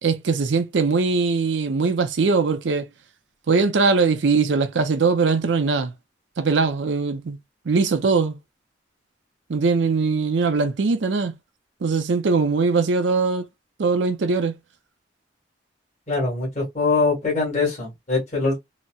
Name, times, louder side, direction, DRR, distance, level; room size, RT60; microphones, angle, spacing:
voice 1, 0.0-2.8 3.5-5.9 6.4-7.4 7.7-8.4 9.5-11.3 11.8-13.4 13.8-14.5, right 4 dB, 80° right, 0.5 m, -21 dB
voice 2, 16.1-18.6, left 3 dB, 40° left, 1.6 m, -23 dB
3.9 x 2.1 x 2.3 m
head